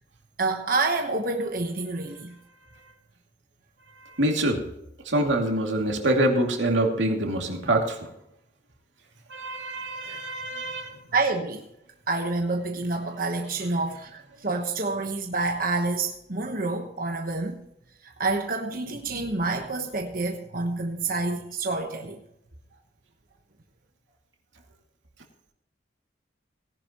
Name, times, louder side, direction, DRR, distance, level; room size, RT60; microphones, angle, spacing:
voice 1, 0.4-2.3 10.0-10.2 11.1-11.6 12.1-17.6 18.0-22.2, right 3 dB, 50° right, 3 dB, 1.2 m, -28 dB
voice 2, 4.0-4.6 5.0-8.0 9.3-10.9, right 1 dB, 90° right, 1 dB, 2.5 m, -25 dB
18.0 x 11.0 x 3.0 m, 0.80 s
head